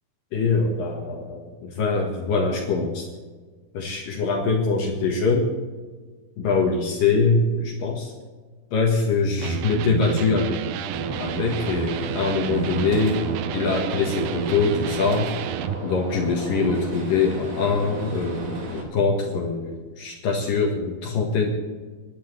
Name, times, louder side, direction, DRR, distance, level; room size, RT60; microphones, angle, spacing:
voice 1, 0.3-3.1 3.7-5.5 6.4-8.1 8.7-13.2 13.5-15.3 15.8-21.5, left 4 dB, 65° left, 0 dB, 2.8 m, -23 dB
Electric guitar, 9.4-15.8, right 10 dB, 85° right, 2.0 m, -30 dB
Gunshot gunfire, 10.9-18.8, right 2 dB, 55° right, 3.8 m, -34 dB
24.5 x 12.0 x 3.3 m, 1.5 s
omnidirectional pair, 4.8 m